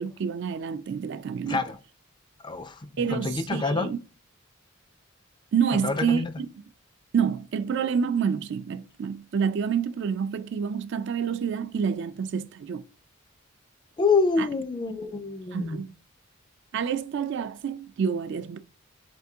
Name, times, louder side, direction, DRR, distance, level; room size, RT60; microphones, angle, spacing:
voice 1, 0.0-1.6 3.0-4.0 5.5-6.5 7.1-12.8 14.4-14.5 15.5-15.9 16.7-18.6, right 7 dB, 55° right, 0.3 m, -28 dB
voice 2, 1.5-1.8 2.4-3.9 5.7-6.3 14.0-15.8, left 4 dB, 20° left, 0.4 m, -27 dB
4.3 x 3.5 x 2.7 m
head